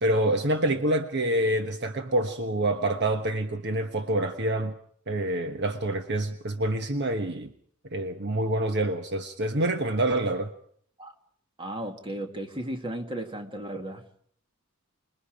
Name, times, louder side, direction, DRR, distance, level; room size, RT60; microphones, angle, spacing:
voice 1, 0.0-4.7 5.1-7.5 7.9-10.5, right 1 dB, 50° right, 6 dB, 1.3 m, -27 dB
voice 2, 11.6-14.0, right 1 dB, 25° right, 5 dB, 2.2 m, -35 dB
27.0 x 21.5 x 5.1 m, 0.62 s
head